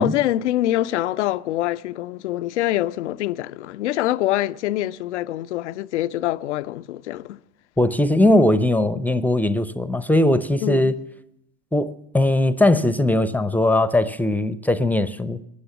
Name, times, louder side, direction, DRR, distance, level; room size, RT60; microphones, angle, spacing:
voice 1, 0.0-7.4 10.6-11.0, left 14 dB, 85° left, 0.5 m, -25 dB
voice 2, 7.8-11.0 11.7-15.4, left 1 dB, 5° left, 0.6 m, -19 dB
16.0 x 9.8 x 7.1 m
hypercardioid pair, 90°, 34 cm